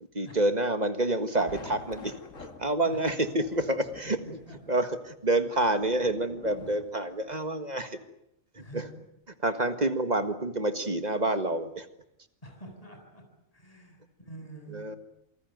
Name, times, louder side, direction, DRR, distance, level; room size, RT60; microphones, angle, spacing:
voice 1, 0.1-2.1 2.6-4.4 4.7-8.0 8.6-8.8 9.4-11.9 14.7-15.0, right 2 dB, 30° right, 9 dB, 1.7 m, -28 dB
sound 1, 1.1-7.3, left 4 dB, 70° left, 2.5 m, -49 dB
voice 2, 4.0-4.6 8.5-8.9 12.4-13.2 13.5-14.8, right 2 dB, 25° left, 3 dB, 7.3 m, -46 dB
28.0 x 20.0 x 9.4 m, 0.81 s
omnidirectional pair, 1.4 m